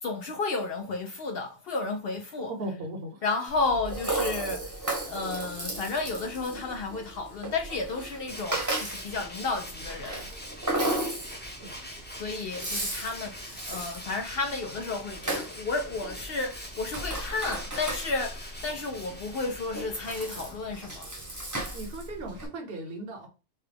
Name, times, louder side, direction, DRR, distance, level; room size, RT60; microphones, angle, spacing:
voice 1, 0.0-2.6 3.2-10.3 12.2-21.1, left 3 dB, 60° left, 0.7 m, -32 dB
voice 2, 2.5-3.2 11.6-12.0 21.7-23.3, right 1 dB, 50° right, 1.1 m, -37 dB
Rattle (instrument), 3.5-22.5, right 1 dB, 15° right, 0.9 m, -35 dB
Tools, 8.3-20.8, equal, 10° left, 0.8 m, -43 dB
5.7 x 2.2 x 3.4 m
omnidirectional pair, 1.3 m